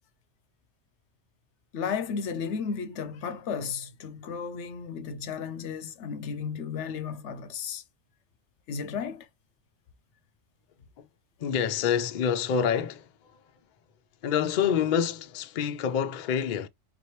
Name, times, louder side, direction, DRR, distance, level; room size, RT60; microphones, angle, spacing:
voice 1, 1.7-7.8 8.7-9.3, left 6 dB, 80° left, 0.9 m, -34 dB
voice 2, 11.4-13.1 14.2-16.7, left 8 dB, 55° left, 0.6 m, -27 dB
3.8 x 2.9 x 3.0 m
omnidirectional pair, 1.2 m